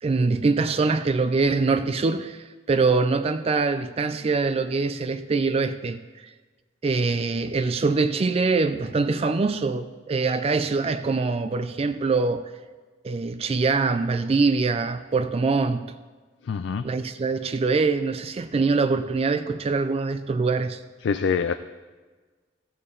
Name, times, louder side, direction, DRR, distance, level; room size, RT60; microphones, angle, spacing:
voice 1, 0.0-6.3 6.8-12.5 13.0-15.9 16.8-20.8, right 4 dB, 35° right, 0.3 m, -24 dB
voice 2, 16.5-16.9 21.0-21.5, left 6 dB, 75° left, 0.4 m, -25 dB
14.0 x 8.1 x 3.8 m
head